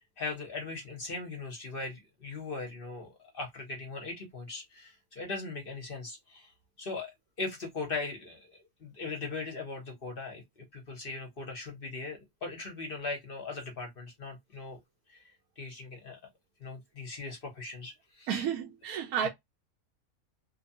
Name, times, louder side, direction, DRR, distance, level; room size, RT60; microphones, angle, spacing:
voice 1, 0.0-6.5 6.8-7.1 7.4-14.8 15.1-15.2 15.6-16.2 16.6-18.4 19.2-19.3, left 3 dB, 45° left, 0.8 m, -39 dB
voice 2, 18.3-19.3, right 8 dB, 85° right, 1.1 m, -31 dB
2.8 x 2.2 x 2.6 m
omnidirectional pair, 1.5 m